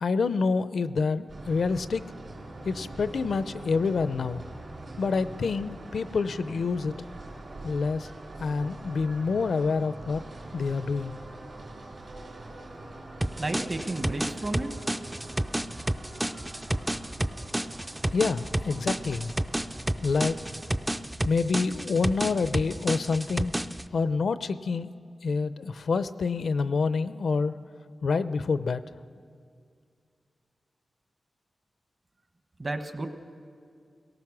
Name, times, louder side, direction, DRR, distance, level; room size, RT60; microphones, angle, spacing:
voice 1, 0.0-2.0 2.6-4.5 5.0-6.9 7.6-8.1 8.4-10.2 10.5-11.2 18.1-19.3 20.0-20.4 21.2-23.5 23.9-24.9 25.2-27.6 28.0-28.8, left 4 dB, 75° left, 13 dB, 0.6 m, -27 dB
sound 1, 1.3-20.9, right 2 dB, 55° right, 3.3 m, -44 dB
sound 2, 13.2-23.9, right 1 dB, 10° right, 0.4 m, -31 dB
voice 2, 13.3-14.8 32.6-33.1, right 2 dB, 30° right, 6 dB, 1.1 m, -32 dB
28.0 x 18.0 x 6.1 m, 2.3 s
wide cardioid pair, 155°, 0 cm